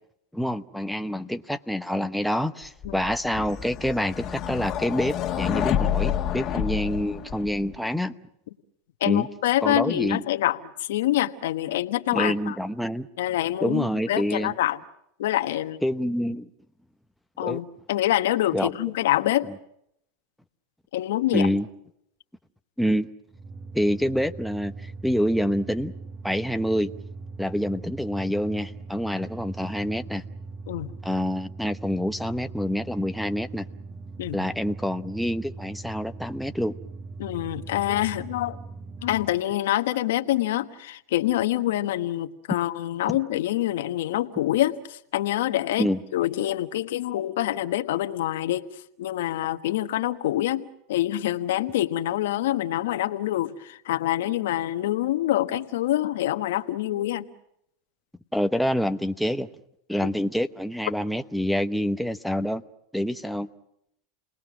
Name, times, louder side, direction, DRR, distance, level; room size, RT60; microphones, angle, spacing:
voice 1, 0.3-8.1 9.0-9.3 9.6-10.2 12.1-13.1 13.6-14.5 15.8-16.5 17.4-17.6 18.5-18.7 21.3-21.7 22.8-23.1 23.7-25.9 26.2-26.9 27.4-30.2 31.0-33.6 34.3-36.7 45.8-46.0 58.3-59.5 59.9-62.6 62.9-63.5, equal, ahead, 7 dB, 0.9 m, -27 dB
sound 1, 2.8-7.7, left 10 dB, 40° left, 1.7 m, -28 dB
voice 2, 9.0-12.6 13.2-14.8 15.2-15.8 17.4-19.5 20.9-21.5 30.7-30.9 34.2-34.4 37.2-38.6 39.0-57.3 60.0-60.1, left 14 dB, 75° left, 7 dB, 1.3 m, -26 dB
sound 2, 23.3-39.4, right 3 dB, 30° right, 1.5 m, -40 dB
29.5 x 19.5 x 6.2 m, 0.75 s
hypercardioid pair, 115°, 0 cm